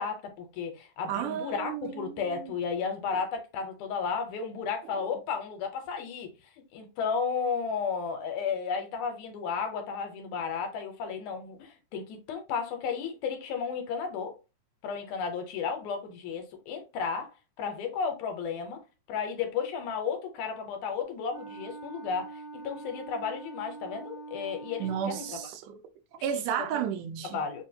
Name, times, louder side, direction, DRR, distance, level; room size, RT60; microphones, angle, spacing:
voice 1, 0.0-6.3 6.7-14.3 14.8-17.3 17.6-18.8 19.1-25.4 26.3-26.4 27.3-27.6, left 6 dB, 75° left, 2.2 m, -33 dB
voice 2, 1.1-2.5 24.8-25.8 26.2-27.5, right 9 dB, 85° right, 2.2 m, -33 dB
Wind instrument woodwind instrument, 21.3-25.5, right 4 dB, 55° right, 1.8 m, -44 dB
5.0 x 2.4 x 2.7 m
omnidirectional pair, 3.6 m